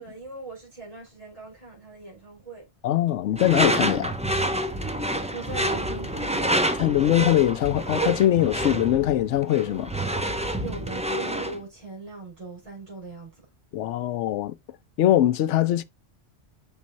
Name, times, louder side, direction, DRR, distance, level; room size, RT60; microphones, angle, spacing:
voice 1, 0.0-2.7 4.7-6.5 10.6-13.4, right 3 dB, 30° right, 4.5 m, -40 dB
voice 2, 2.8-4.1 6.8-9.9 13.7-14.5 15.0-15.8, left 13 dB, 80° left, 0.9 m, -22 dB
Door / Screech, 3.4-11.6, right 1 dB, 5° right, 0.7 m, -27 dB
6.2 x 5.4 x 4.1 m
omnidirectional pair, 1.2 m